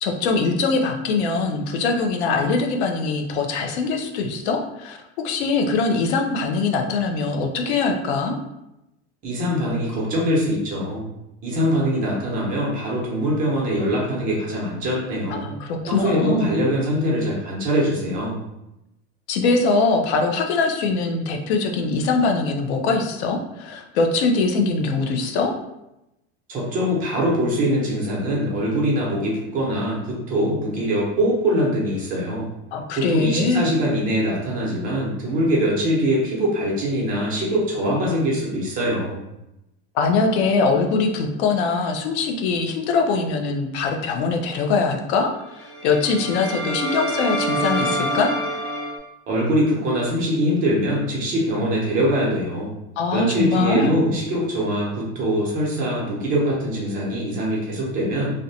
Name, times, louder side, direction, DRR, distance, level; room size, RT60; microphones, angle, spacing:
voice 1, 0.0-5.0 5.2-8.4 15.3-16.6 19.3-25.5 32.7-33.7 39.9-48.3 53.0-53.9, left 4 dB, 85° left, 3 dB, 0.5 m, -22 dB
voice 2, 9.2-11.0 11.4-15.4 15.9-18.4 26.5-32.4 33.0-39.2 49.3-52.7 53.1-58.3, equal, 25° right, -4 dB, 0.6 m, -23 dB
sound 1, 45.6-49.0, right 1 dB, 15° left, 0.5 m, -26 dB
2.5 x 2.1 x 2.7 m, 0.89 s
supercardioid pair, 160°, 32 cm